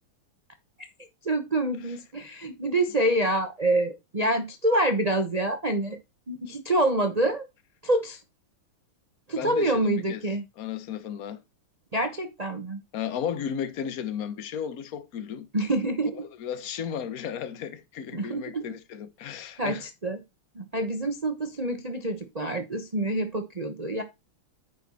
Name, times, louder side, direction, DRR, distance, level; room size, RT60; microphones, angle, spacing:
voice 1, 1.2-6.0 6.3-7.5 7.8-8.2 9.3-10.4 11.9-12.8 15.5-16.3 18.1-18.6 19.6-20.2 20.5-24.0, right 1 dB, 40° right, 0.5 m, -26 dB
voice 2, 9.4-10.2 10.6-11.4 12.9-15.5 16.4-19.8, left 8 dB, 50° left, 1.3 m, -34 dB
9.3 x 5.6 x 4.2 m
omnidirectional pair, 2.4 m